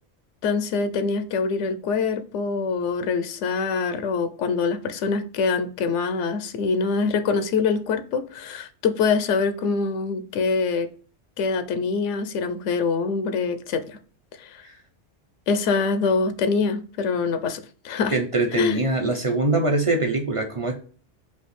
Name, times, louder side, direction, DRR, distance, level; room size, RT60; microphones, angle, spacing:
voice 1, 0.4-10.9 11.4-14.0 14.4-14.6 15.5-18.1 18.6-18.8, left 4 dB, 90° left, 0.9 m, -24 dB
voice 2, 18.1-20.7, right 2 dB, 40° right, 0.5 m, -23 dB
5.2 x 2.4 x 3.2 m
omnidirectional pair, 1.2 m